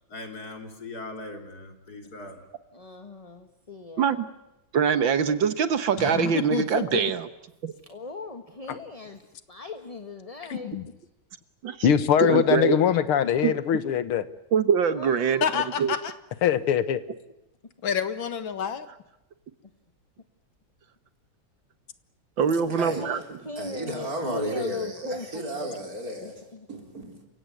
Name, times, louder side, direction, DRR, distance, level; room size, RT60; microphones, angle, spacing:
voice 1, 0.1-2.4, left 2 dB, 45° left, 3.8 m, -40 dB
voice 2, 2.7-4.1 7.9-9.2 9.5-10.8 14.9-15.5 22.5-22.7 23.0-25.8 26.2-26.7, left 3 dB, 20° left, 1.3 m, -39 dB
voice 3, 4.7-7.3 7.6-7.7 11.6-11.9 12.2-12.8 13.4-13.5 14.5-15.4 15.8-16.0 22.4-23.2 23.6-23.7, right 7 dB, 65° right, 1.9 m, -23 dB
voice 4, 6.0-7.0 15.4-16.1 17.8-18.9, left 7 dB, 65° left, 2.1 m, -28 dB
voice 5, 10.5-10.8 11.8-14.2 16.4-17.0, left 9 dB, 85° left, 2.2 m, -22 dB
voice 6, 22.7-23.1 23.6-27.3, right 1 dB, 40° right, 4.8 m, -34 dB
29.0 x 17.0 x 9.3 m
omnidirectional pair, 2.3 m